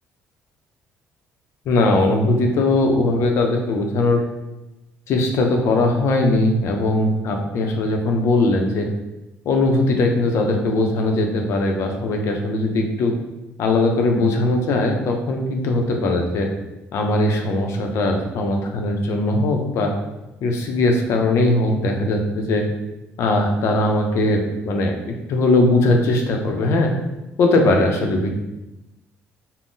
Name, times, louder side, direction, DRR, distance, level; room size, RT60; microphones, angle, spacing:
voice 1, 1.7-4.2 5.1-8.9 9.5-13.1 13.6-16.5 16.9-19.9 20.4-22.6 23.2-26.9 27.4-28.3, left 2 dB, 70° left, 3 dB, 0.5 m, -20 dB
3.6 x 2.0 x 2.6 m, 0.98 s
cardioid pair, 90°, 5 cm